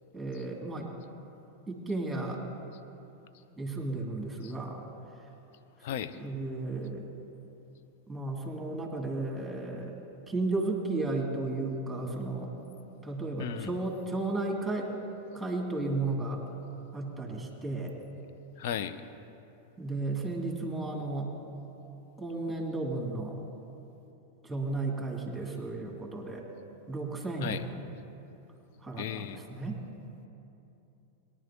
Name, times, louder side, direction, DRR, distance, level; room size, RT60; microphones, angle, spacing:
voice 1, 0.1-0.9 1.7-2.4 3.6-4.9 6.1-7.1 8.1-10.0 10.3-12.5 13.0-14.9 15.3-16.4 16.9-17.9 19.8-21.3 22.2-23.4 24.4-26.5 26.9-27.8 28.8-29.8, right 2 dB, 5° right, -1 dB, 2.5 m, -34 dB
voice 2, 5.8-6.2 13.4-13.7 18.6-19.0 27.4-27.6 29.0-29.4, left 9 dB, 50° left, 12 dB, 0.6 m, -35 dB
21.5 x 11.0 x 2.9 m, 2.8 s
figure-of-eight pair, 90°, 0 cm